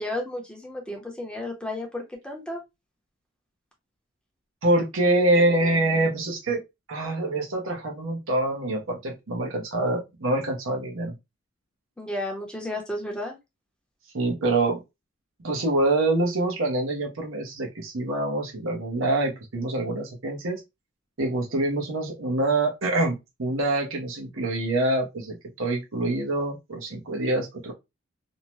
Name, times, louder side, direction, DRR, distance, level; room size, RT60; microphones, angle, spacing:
voice 1, 0.0-2.6 12.0-13.3, left 1 dB, 5° left, 0.6 m, -33 dB
voice 2, 4.6-6.6 6.9-11.1 14.1-14.8 15.4-20.6 21.2-27.7, right 2 dB, 80° right, 0.8 m, -25 dB
2.7 x 2.1 x 3.0 m
head